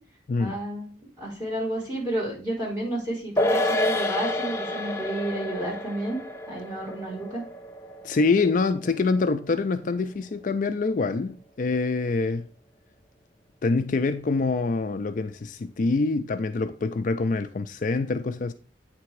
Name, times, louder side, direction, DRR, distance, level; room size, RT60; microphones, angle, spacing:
voice 1, 0.4-0.9 1.2-7.4, right 1 dB, 20° right, 4.4 m, -31 dB
sound 1, 3.4-10.0 10.3-10.4, left 1 dB, 15° left, 0.7 m, -30 dB
voice 2, 8.0-12.5 13.6-18.5, left 3 dB, 45° left, 0.4 m, -25 dB
9.2 x 3.4 x 4.7 m
head